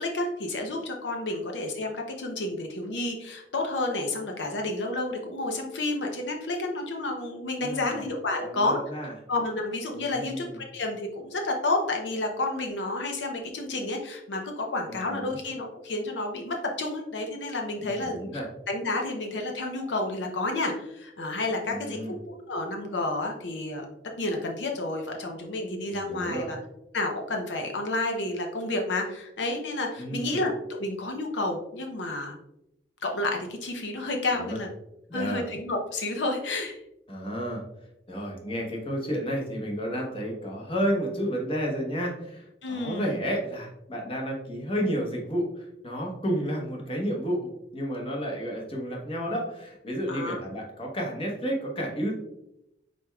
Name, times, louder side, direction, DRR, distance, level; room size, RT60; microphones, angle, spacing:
voice 1, 0.0-8.8 9.3-18.3 18.7-23.9 24.2-26.6 26.9-32.4 33.0-34.7 35.1-36.8 42.6-43.1 46.3-46.4 50.1-50.4, left 2 dB, 85° left, 3 dB, 0.7 m, -30 dB
voice 2, 7.6-8.0 8.4-9.1 9.9-10.6 14.9-15.4 17.8-18.5 21.6-22.1 25.9-26.5 30.0-30.4 34.4-34.6 35.1-35.5 37.1-37.6 38.1-52.1, equal, 30° left, -1 dB, 1.0 m, -31 dB
5.0 x 4.5 x 2.3 m, 0.84 s
head